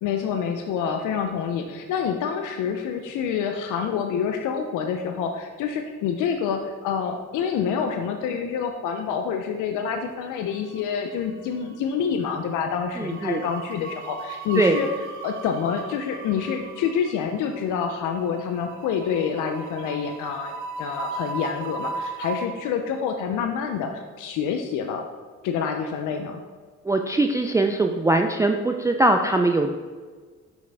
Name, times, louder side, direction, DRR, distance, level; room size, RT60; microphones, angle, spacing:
voice 1, 0.0-14.9 15.2-25.0 25.4-26.4, left 7 dB, 85° left, 5 dB, 0.5 m, -27 dB
sound 1, 10.4-11.2 11.5-11.7 12.9-22.5, right 4 dB, 75° right, 0.8 m, -37 dB
voice 2, 13.0-13.4 14.6-14.8 26.9-29.7, right 2 dB, 10° right, 4 dB, 0.3 m, -21 dB
6.1 x 5.4 x 3.4 m, 1.5 s
cardioid pair, 90°, 30 cm